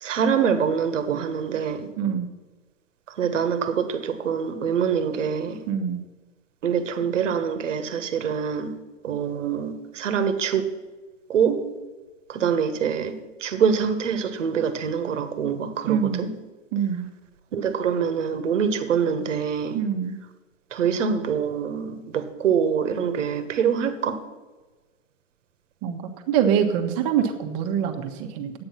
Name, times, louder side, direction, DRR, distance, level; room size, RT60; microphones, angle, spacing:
voice 1, 0.0-1.9 3.2-5.6 6.6-8.8 9.0-10.7 11.3-11.7 12.3-16.3 17.5-19.8 20.7-24.2, right 7 dB, 75° right, 9 dB, 1.4 m, -25 dB
voice 2, 2.0-2.3 5.7-6.0 15.9-16.3 16.7-17.1 19.7-20.1 25.8-26.0 26.3-28.5, right 8 dB, 40° right, 4 dB, 1.4 m, -24 dB
10.5 x 8.9 x 5.8 m, 1.3 s
hypercardioid pair, 120°, 38 cm